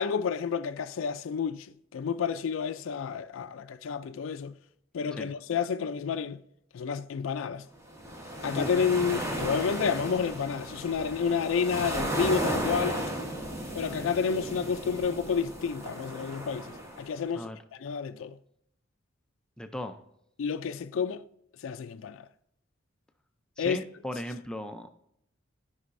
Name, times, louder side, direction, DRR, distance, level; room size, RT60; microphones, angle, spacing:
voice 1, 0.0-1.7 1.9-4.5 4.9-6.4 6.7-7.7 8.4-13.0 13.7-16.7 17.0-17.5 17.8-18.4 20.4-21.2 21.6-22.2 23.6-23.8, left 6 dB, 85° left, 0.4 m, -30 dB
sound 1, 7.9-17.1, right 1 dB, 15° right, 1.1 m, -34 dB
voice 2, 8.5-8.8 17.3-17.6 19.6-20.0 23.6-24.9, left 1 dB, 5° left, 0.4 m, -37 dB
12.5 x 5.5 x 2.6 m
head